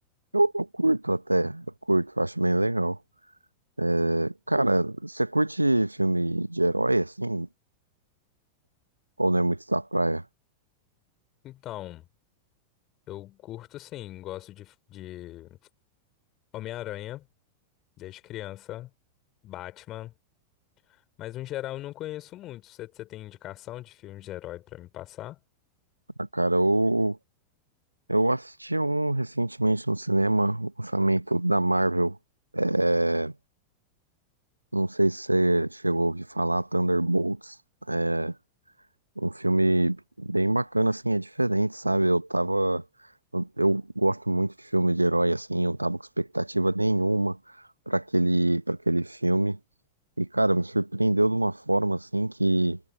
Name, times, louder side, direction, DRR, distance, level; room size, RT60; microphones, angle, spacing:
voice 1, 0.3-3.0 3.8-7.5 9.2-10.2 26.2-27.2 28.1-32.2 32.5-33.3 34.7-37.5 37.9-38.3 39.2-42.8 43.3-47.4 47.9-49.6 50.2-52.8, right 1 dB, 85° right, 1.5 m, -25 dB
voice 2, 11.4-12.1 13.1-15.6 16.5-17.3 18.0-18.9 19.4-20.1 21.2-25.4, left 14 dB, 35° left, 4.3 m, -39 dB
figure-of-eight pair, 90°, 0 cm